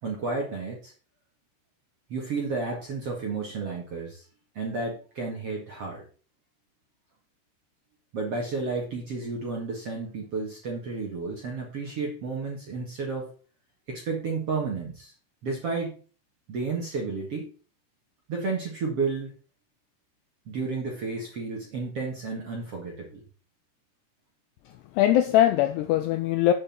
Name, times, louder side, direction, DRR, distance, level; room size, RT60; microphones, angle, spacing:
voice 1, 0.0-0.9 2.1-4.3 4.5-6.0 8.1-13.3 13.9-15.1 15.4-16.0 16.5-17.5 18.3-19.3 20.5-23.2, right 4 dB, 50° right, 1.9 m, -32 dB
voice 2, 24.7-26.5, left 12 dB, 90° left, 2.4 m, -22 dB
8.5 x 6.5 x 7.1 m
omnidirectional pair, 5.7 m